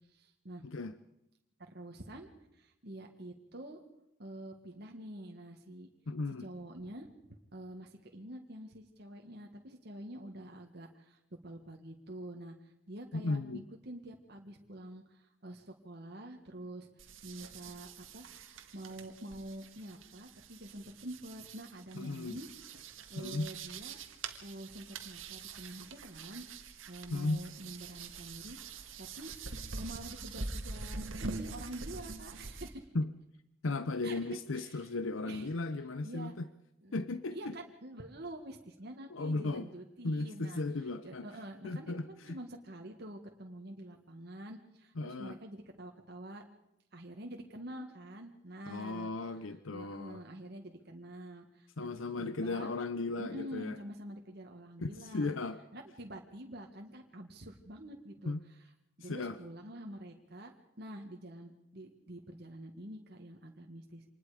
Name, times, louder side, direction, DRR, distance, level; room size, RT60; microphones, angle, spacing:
voice 1, 0.1-0.6 1.6-2.3 2.5-3.8 4.2-5.9 6.4-7.1 7.5-18.2 18.7-22.5 23.1-24.0 24.4-28.6 29.0-29.3 29.7-32.9 34.0-34.9 35.2-35.5 36.0-36.4 36.8-37.0 37.3-40.6 41.0-46.4 46.9-49.1 49.7-51.9 52.2-52.7 53.2-55.3 55.7-58.3 59.0-64.0, right 1 dB, 55° right, 2 dB, 1.8 m, -47 dB
voice 2, 0.6-0.9 6.1-6.5 13.1-13.6 22.0-22.4 23.2-23.5 27.1-27.4 32.9-33.1 33.6-36.5 36.9-37.5 39.1-39.7 40.0-41.2 41.6-42.4 45.0-45.4 48.7-50.2 51.8-53.8 54.8-55.6 58.3-58.4 59.0-59.4, left 3 dB, 90° left, 13 dB, 0.8 m, -36 dB
sound 1, 17.0-32.7, right 4 dB, 90° right, 1.8 m, -45 dB
25.5 x 20.0 x 5.1 m, 0.87 s
head